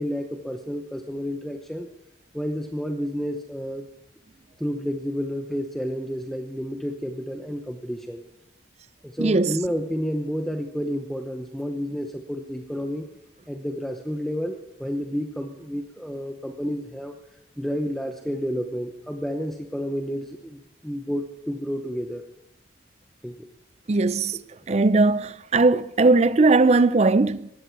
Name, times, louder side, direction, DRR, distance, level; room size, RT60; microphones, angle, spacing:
voice 1, 0.0-1.9 2.3-3.9 4.6-8.2 9.0-13.1 13.5-17.1 17.6-22.2 23.2-23.4, equal, ahead, 0.8 m, -30 dB
voice 2, 9.2-9.6 23.9-24.4 24.7-27.5, right 3 dB, 35° right, 0.4 m, -19 dB
19.5 x 14.5 x 4.6 m
head